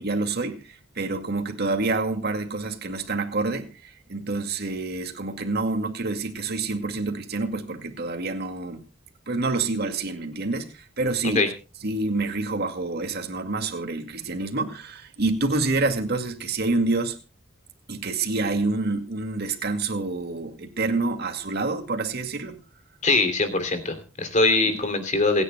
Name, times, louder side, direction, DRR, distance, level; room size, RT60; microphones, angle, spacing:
voice 1, 0.0-8.9 9.3-11.4 11.8-17.2 17.9-22.6 24.6-24.8, right 3 dB, 55° right, 2.2 m, -27 dB
voice 2, 23.0-25.4, left 3 dB, 40° left, 3.0 m, -22 dB
27.5 x 10.0 x 2.3 m
head